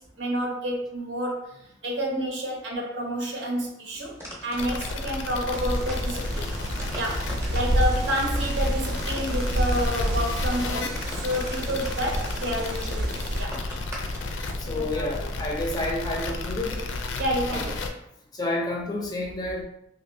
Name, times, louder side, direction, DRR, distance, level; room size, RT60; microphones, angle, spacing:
voice 1, 0.0-4.1 4.4-6.5 6.9-13.6 14.7-15.1 17.2-17.7, equal, 80° right, -1 dB, 0.8 m, -29 dB
sound 1, 4.0-14.4, equal, 15° right, 0.7 m, -43 dB
sound 2, 4.6-17.9, left 3 dB, 85° left, 0.4 m, -32 dB
Wind, 5.5-13.4, equal, 55° right, 0.4 m, -29 dB
voice 2, 14.6-16.9 17.5-17.7 18.3-19.6, left 1 dB, 20° left, 0 dB, 0.5 m, -30 dB
2.9 x 2.7 x 2.6 m, 0.79 s
head